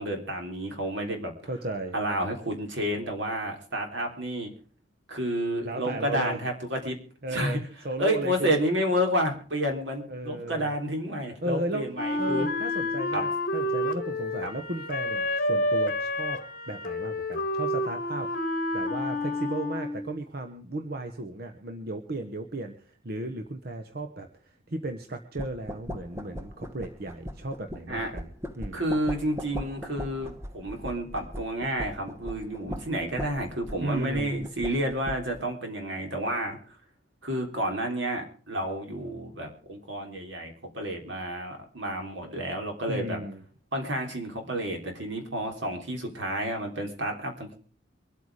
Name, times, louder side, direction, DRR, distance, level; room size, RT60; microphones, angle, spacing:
voice 1, 0.0-1.3 1.9-4.5 5.1-7.0 7.3-7.6 8.0-12.5 13.1-13.2 14.4-14.5 27.9-28.1 28.7-36.6 37.2-43.2 43.7-47.6, equal, 80° right, 3 dB, 3.6 m, -30 dB
voice 2, 1.5-2.0 5.6-6.4 7.2-7.6 7.8-8.5 10.1-10.7 11.4-11.9 12.2-18.3 18.7-28.3 28.5-28.8 33.8-34.5 42.9-43.4, right 2 dB, 55° right, 6 dB, 1.1 m, -35 dB
Wind instrument woodwind instrument, 11.9-20.1, left 1 dB, 50° left, 2.0 m, -29 dB
sound 1, 25.4-35.4, equal, 15° right, 1.1 m, -40 dB
24.0 x 8.3 x 4.9 m, 0.42 s
head